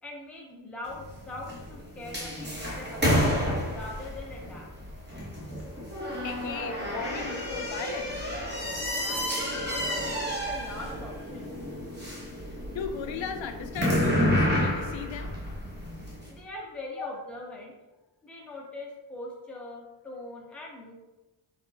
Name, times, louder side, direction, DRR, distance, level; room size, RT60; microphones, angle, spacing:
voice 1, 0.0-3.3 3.7-4.7 8.6-11.5 16.2-17.8 18.2-21.1, left 2 dB, 5° left, -3 dB, 0.5 m, -42 dB
sound 1, 0.8-16.3, equal, 25° right, 0.9 m, -30 dB
voice 2, 6.2-8.3 12.7-15.4 17.0-17.1, left 7 dB, 80° left, 7 dB, 0.6 m, -37 dB
4.3 x 4.0 x 2.7 m, 1.1 s
wide cardioid pair, 175°, 46 cm